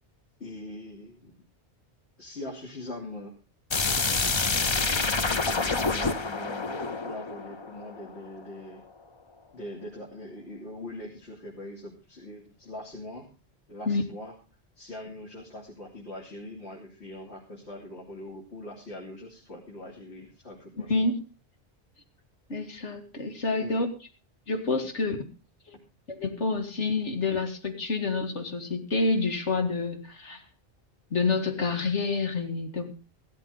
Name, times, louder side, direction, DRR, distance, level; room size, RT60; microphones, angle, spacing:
voice 1, 0.4-1.3 2.2-3.3 4.8-8.8 9.5-13.3 13.7-14.3 14.7-20.9 23.6-23.8, left 1 dB, 70° left, -2 dB, 3.2 m, -42 dB
sound 1, 3.7-8.4, left 3 dB, 30° left, 0.7 m, -27 dB
voice 2, 20.8-21.2 22.5-23.9 24.5-25.2 25.7-25.8 26.1-30.4 31.1-32.9, left 3 dB, 85° left, 4 dB, 2.4 m, -28 dB
16.0 x 13.0 x 3.8 m, 0.33 s
omnidirectional pair, 1.2 m